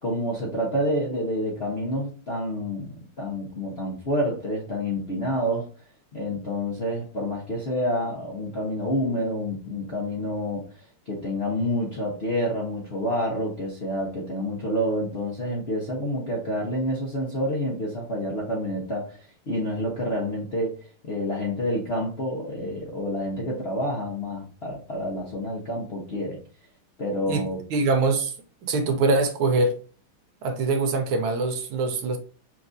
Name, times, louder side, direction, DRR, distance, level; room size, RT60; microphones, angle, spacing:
voice 1, 0.0-5.7 6.1-20.8 21.0-26.4 27.0-27.6, equal, 50° left, 0.7 m, -28 dB
voice 2, 27.7-28.3 28.6-29.8 30.4-32.2, right 3 dB, 80° right, 1.6 m, -23 dB
5.8 x 2.6 x 2.6 m
omnidirectional pair, 2.4 m